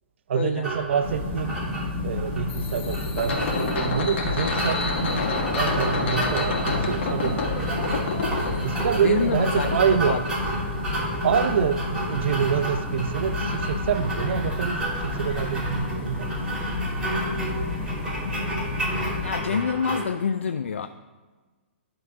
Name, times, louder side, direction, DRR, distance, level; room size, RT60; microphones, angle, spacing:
voice 1, 0.3-1.6 2.0-7.5 8.6-10.2 11.2-16.4, right 7 dB, 65° right, 12 dB, 0.5 m, -26 dB
sound 1, 0.6-20.0, right 1 dB, 10° right, 2.8 m, -32 dB
sound 2, 1.0-19.3, left 3 dB, 25° left, 1.9 m, -31 dB
sound 3, 2.5-9.5, left 3 dB, 70° left, 1.7 m, -29 dB
voice 2, 9.0-9.8 10.1-10.2 19.2-20.9, left 6 dB, 90° left, 9 dB, 0.4 m, -27 dB
11.0 x 3.7 x 5.9 m, 1.3 s
hypercardioid pair, 140°, 7 cm